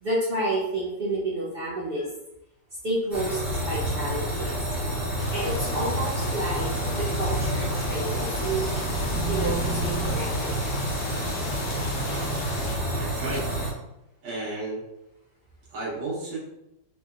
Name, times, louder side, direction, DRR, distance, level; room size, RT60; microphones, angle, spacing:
voice 1, 0.0-2.1 2.8-4.5 5.3-6.7 7.0-8.7 9.3-10.6, right 1 dB, 60° right, -5 dB, 0.6 m, -30 dB
sound 1, 3.1-13.7, right 1 dB, ahead, 1.0 m, -29 dB
sound 2, 5.2-12.8, left 3 dB, 90° left, 0.7 m, -38 dB
sound 3, 6.8-10.5, right 2 dB, 40° left, 0.9 m, -34 dB
voice 2, 12.9-13.5 14.2-14.8 15.7-16.4, right 2 dB, 80° right, -7 dB, 1.8 m, -32 dB
4.0 x 2.9 x 2.4 m, 0.83 s
omnidirectional pair, 2.0 m